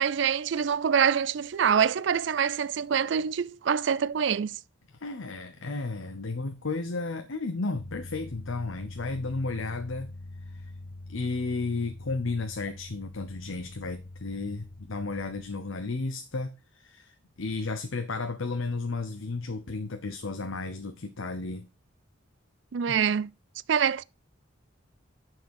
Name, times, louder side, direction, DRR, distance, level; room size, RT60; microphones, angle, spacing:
voice 1, 0.0-4.6 22.7-23.3 23.7-24.0, right 7 dB, 60° right, 0.4 m, -25 dB
voice 2, 5.0-10.1 10.5-10.6 11.1-17.1 17.4-21.7 22.9-23.0, left 3 dB, 80° left, 0.9 m, -33 dB
sound 1, 7.7-15.6, left 2 dB, 50° left, 0.6 m, -44 dB
10.5 x 4.6 x 4.8 m
head